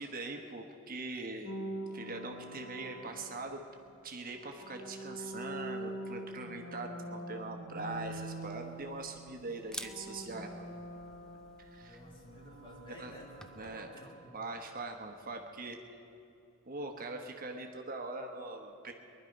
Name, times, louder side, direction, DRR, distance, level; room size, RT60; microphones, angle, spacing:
voice 1, 0.0-1.6 1.9-3.6 4.0-10.7 11.6-12.0 13.0-13.1 13.6-13.9 14.3-15.8 16.7-18.9, right 3 dB, 45° right, 3 dB, 1.1 m, -42 dB
sound 1, 1.4-3.9 4.5-9.4 9.6-14.6, right 1 dB, 70° left, 1.7 m, -45 dB
Camera, 7.9-13.8, left 1 dB, 5° left, 0.5 m, -52 dB
voice 2, 11.8-14.5, equal, 25° left, -1 dB, 2.4 m, -53 dB
20.5 x 11.5 x 5.3 m, 2.7 s
head